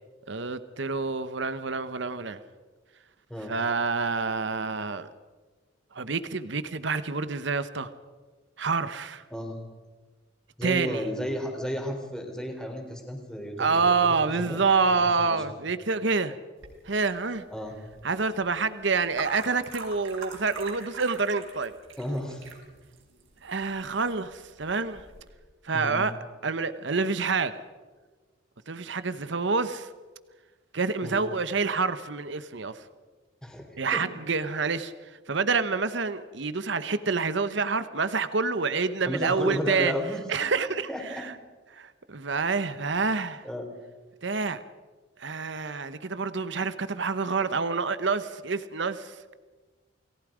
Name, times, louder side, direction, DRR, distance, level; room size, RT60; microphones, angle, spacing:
voice 1, 0.3-2.4 3.5-5.1 5.9-7.9 8.6-9.2 10.6-11.0 13.6-16.4 16.8-17.4 18.0-21.7 23.4-25.0 25.6-26.1 26.4-27.5 28.7-29.9 30.7-32.9 33.8-39.9 40.3-41.3 41.7-43.5 44.2-44.6 45.2-49.4, right 4 dB, 60° right, 13 dB, 0.9 m, -27 dB
voice 2, 9.3-9.6 10.6-14.6 14.9-15.4 17.5-17.8 22.0-22.5 25.7-26.0 31.0-31.2 33.4-34.0 39.1-40.2 40.9-41.2 43.4-43.7, equal, 5° left, 2 dB, 3.4 m, -33 dB
sound 1, 16.6-25.3, right 4 dB, 80° right, 4.6 m, -45 dB
29.5 x 19.0 x 5.0 m, 1.3 s
head